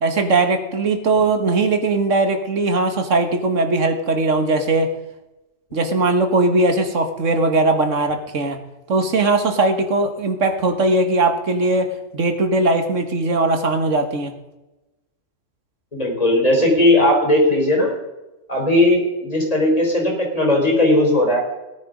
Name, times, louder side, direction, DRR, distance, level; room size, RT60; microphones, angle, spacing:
voice 1, 0.0-4.9 5.7-8.6 8.9-14.3, right 2 dB, 75° right, 6 dB, 2.0 m, -19 dB
voice 2, 15.9-17.9 18.5-21.4, left 1 dB, 30° left, 0 dB, 4.3 m, -17 dB
18.0 x 9.5 x 5.2 m, 1.0 s
omnidirectional pair, 1.3 m